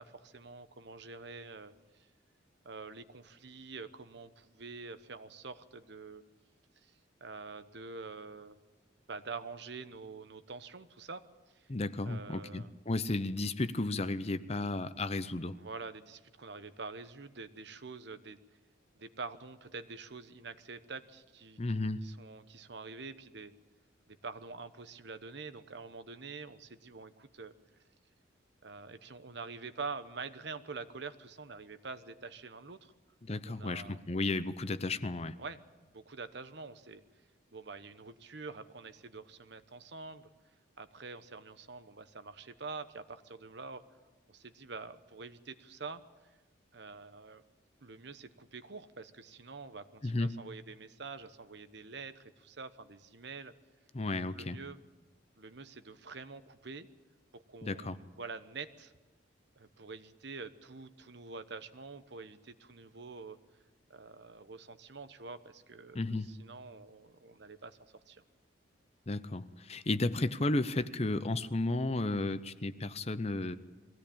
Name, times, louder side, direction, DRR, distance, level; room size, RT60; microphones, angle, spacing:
voice 1, 0.0-1.7 2.6-6.2 6.8-6.9 7.2-8.6 9.1-11.2 11.5-11.7 12.0-12.7 15.5-18.4 18.9-21.6 22.0-23.5 24.1-27.5 28.6-32.9 33.4-34.0 35.4-35.6 35.9-37.0 37.5-40.3 40.8-43.9 44.3-46.0 46.7-47.4 47.8-53.5 54.2-54.8 55.4-56.9 57.3-58.9 59.6-63.4 63.9-68.2, right 4 dB, 60° right, 11 dB, 1.0 m, -46 dB
voice 2, 11.7-15.6 21.6-22.1 33.2-35.4 50.0-50.4 53.9-54.6 57.6-58.0 65.9-66.3 69.1-73.6, left 2 dB, 35° left, 13 dB, 0.7 m, -33 dB
22.0 x 16.5 x 8.7 m, 1.2 s
head